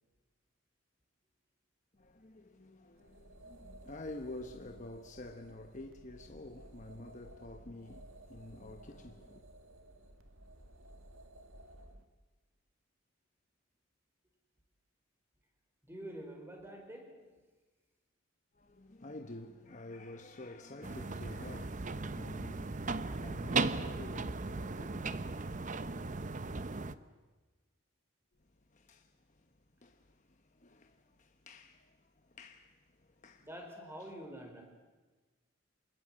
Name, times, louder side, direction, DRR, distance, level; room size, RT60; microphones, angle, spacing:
voice 1, 2.0-9.4 18.5-25.1 28.7-29.5 29.8-33.5 34.0-34.1, left 2 dB, 35° left, 1.0 m, -49 dB
sound 1, 2.9-12.0, right 1 dB, 80° right, 2.0 m, -55 dB
voice 2, 15.8-17.3 33.4-34.6, right 1 dB, 10° right, 4.4 m, -47 dB
sound 2, 20.8-26.9, right 3 dB, 40° right, 0.8 m, -37 dB
27.5 x 20.0 x 7.6 m
head